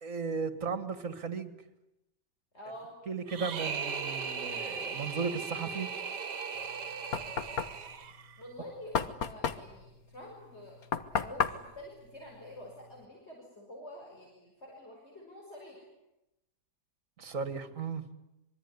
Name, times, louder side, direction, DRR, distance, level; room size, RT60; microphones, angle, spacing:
voice 1, 0.0-1.5 3.1-5.9 17.2-18.1, right 5 dB, 50° right, 2.5 m, -35 dB
voice 2, 2.5-2.9 8.4-10.8 11.1-15.9, left 1 dB, 40° left, 6.3 m, -48 dB
sound 1, 3.3-8.4, right 5 dB, 75° right, 2.0 m, -37 dB
Knock, 6.6-13.0, left 6 dB, 60° left, 1.8 m, -35 dB
25.5 x 23.0 x 9.8 m
omnidirectional pair, 1.8 m